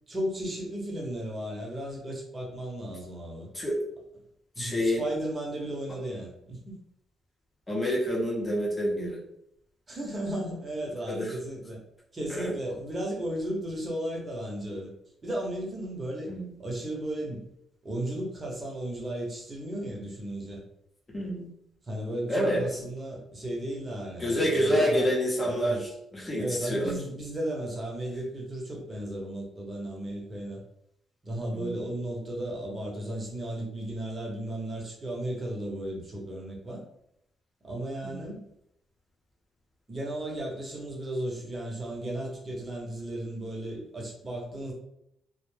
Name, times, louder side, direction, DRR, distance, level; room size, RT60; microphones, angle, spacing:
voice 1, 0.1-3.5 4.6-6.8 9.9-11.8 12.1-14.9 15.2-16.3 16.6-17.4 17.8-20.6 21.8-25.1 25.4-25.9 26.3-30.6 31.2-36.8 37.6-38.5 39.9-44.7, right 1 dB, 30° right, -2 dB, 0.9 m, -34 dB
voice 2, 4.6-5.0 7.7-9.2 11.1-11.3 12.3-12.5 16.3-16.4 21.1-21.5 22.3-22.6 24.2-26.9 31.5-31.7 38.0-38.3, equal, 20° left, -3 dB, 0.9 m, -28 dB
2.2 x 2.1 x 3.2 m, 0.75 s
cardioid pair, 85°, 0 cm